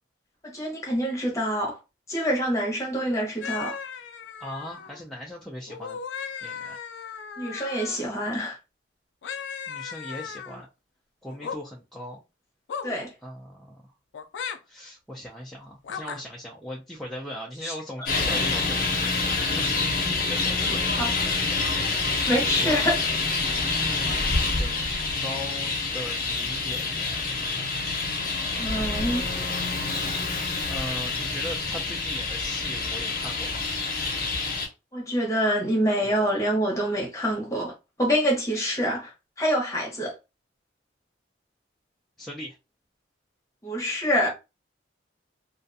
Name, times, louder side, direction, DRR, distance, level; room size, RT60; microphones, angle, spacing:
voice 1, 0.4-1.8 2.1-3.8 7.4-8.6 12.8-13.1 17.6-17.7 21.0-21.1 22.3-23.0 28.6-29.2 30.5-30.7 34.9-37.7 38.0-39.1 39.4-40.1 43.6-44.3, equal, 15° left, 0.9 m, -26 dB
sound 1, 3.4-5.0 5.7-8.1 9.2-10.6 11.3-11.6 12.7-13.0 14.1-14.6 15.8-16.2, left 6 dB, 75° left, 0.4 m, -36 dB
voice 2, 4.4-6.0 6.4-6.8 9.7-10.7 11.2-12.2 13.2-13.8 14.6-19.8 20.3-20.8 21.8-22.1 22.6-22.9 23.3-24.9 25.2-27.2 28.2-28.9 29.6-33.6 36.0-36.3 42.2-42.6, equal, ahead, 0.4 m, -39 dB
Traffic noise roadway noise, 18.1-34.7, left 3 dB, 50° left, 0.7 m, -27 dB
2.4 x 2.2 x 2.6 m
head